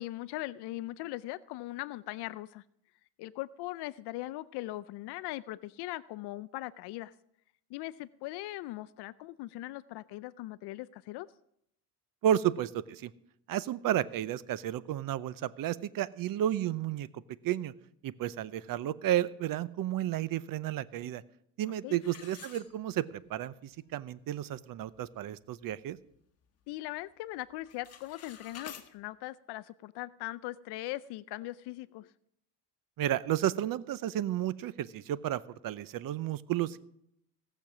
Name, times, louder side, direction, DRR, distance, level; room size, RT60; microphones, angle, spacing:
voice 1, 0.0-2.6 3.2-7.1 7.7-11.3 21.6-22.0 26.7-32.1, left 17 dB, 75° left, 15 dB, 0.5 m, -40 dB
voice 2, 12.2-13.1 13.5-17.1 17.4-17.7 18.0-21.2 21.6-26.0 33.0-36.8, right 12 dB, 55° right, 18 dB, 0.7 m, -32 dB
sound 1, 22.0-23.3 23.7-23.8 24.4-24.5 24.9-25.2 25.6-26.7 27.0-27.3 27.6-28.9, left 8 dB, 40° left, 1.4 m, -50 dB
17.5 x 6.9 x 6.0 m, 0.74 s
cardioid pair, 115°, 40 cm